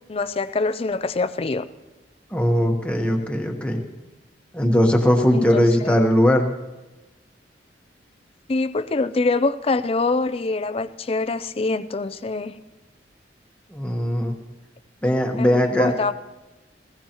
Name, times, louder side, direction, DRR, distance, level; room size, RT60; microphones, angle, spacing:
voice 1, 0.1-1.7 5.3-6.0 8.5-12.5 15.4-16.1, left 3 dB, 35° left, 0.4 m, -24 dB
voice 2, 2.3-3.8 4.5-6.5 13.7-14.3 15.0-15.9, equal, 5° left, 1.2 m, -19 dB
20.0 x 16.0 x 3.0 m
head